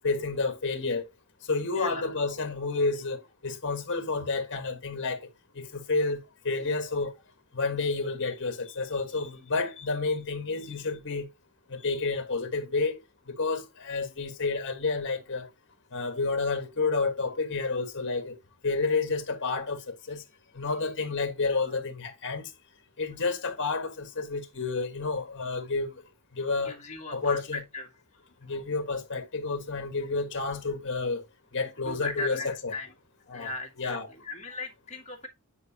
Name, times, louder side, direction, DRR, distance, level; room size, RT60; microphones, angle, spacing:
voice 1, 0.0-1.1 1.5-5.3 5.5-7.1 7.5-11.3 11.7-13.0 13.3-15.5 15.9-18.3 18.6-20.2 20.5-22.5 23.0-26.0 26.3-26.7 27.1-27.6 28.4-31.2 31.5-32.7 33.3-33.5 33.8-34.1, left 3 dB, 55° left, 1.5 m, -30 dB
voice 2, 1.8-2.1 21.6-21.8 26.6-27.9 31.8-32.9 33.3-35.3, left 3 dB, 35° left, 2.1 m, -38 dB
9.5 x 4.8 x 2.9 m
head